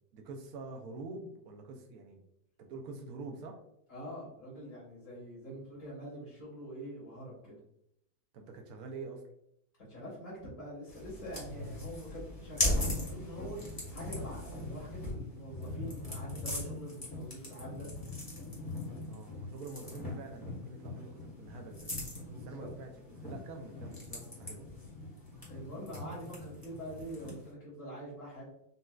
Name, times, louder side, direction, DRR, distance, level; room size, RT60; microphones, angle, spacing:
voice 1, 0.1-2.2 2.6-3.6 8.3-9.2 19.1-21.9 22.3-22.9 23.2-24.7, right 3 dB, 70° right, 3 dB, 1.0 m, -46 dB
voice 2, 3.9-7.5 9.8-17.9 22.2-22.7 25.5-28.5, equal, 50° left, -7 dB, 1.5 m, -45 dB
sound 1, 10.9-27.5, left 1 dB, 15° left, 0.8 m, -39 dB
4.1 x 2.3 x 2.3 m, 0.75 s
omnidirectional pair, 1.8 m